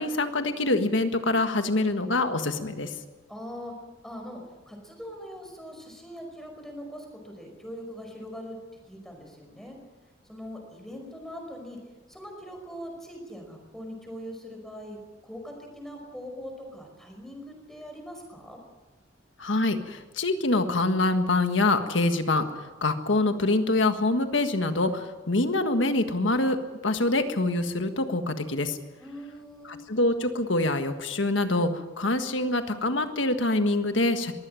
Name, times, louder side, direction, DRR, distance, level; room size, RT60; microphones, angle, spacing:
voice 1, 0.0-2.9 19.4-22.4 22.8-26.6 26.8-28.8 29.7-34.3, left 2 dB, 70° left, 7 dB, 1.6 m, -25 dB
voice 2, 3.3-3.7 4.0-8.6 8.9-9.8 10.2-11.8 12.1-18.6 29.0-29.8, equal, ahead, 3 dB, 5.1 m, -41 dB
22.5 x 16.0 x 7.7 m, 1.2 s
head